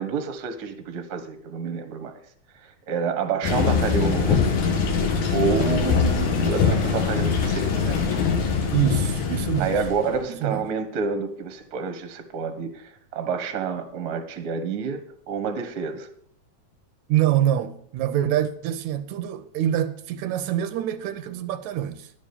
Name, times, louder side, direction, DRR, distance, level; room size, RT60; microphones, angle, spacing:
voice 1, 0.0-2.2 2.5-4.6 5.3-8.0 9.6-15.0 15.3-16.1, right 5 dB, 50° right, 1.2 m, -28 dB
sound 1, 3.4-10.2, left 5 dB, 75° left, 3.0 m, -23 dB
voice 2, 8.7-9.7 10.3-10.6 17.1-22.1, right 11 dB, 80° right, 1.9 m, -25 dB
11.0 x 7.4 x 6.9 m
omnidirectional pair, 3.5 m